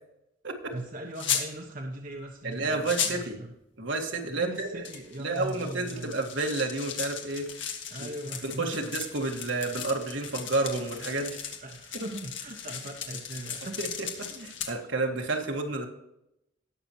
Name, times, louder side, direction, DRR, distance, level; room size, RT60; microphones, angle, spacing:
voice 1, 0.7-3.5 4.3-6.1 7.9-8.9 11.6-13.8 14.2-14.8, right 1 dB, 45° right, 1 dB, 1.2 m, -40 dB
sound 1, 1.2-1.5 2.5-2.6 2.8-3.2 4.6-14.7, left 8 dB, 70° left, 1.9 m, -36 dB
voice 2, 2.4-3.4 3.8-4.8 5.2-7.5 8.0-8.1 8.4-11.4 13.8-15.9, right 3 dB, 70° right, 2 dB, 1.8 m, -30 dB
18.5 x 7.0 x 3.0 m, 0.86 s
head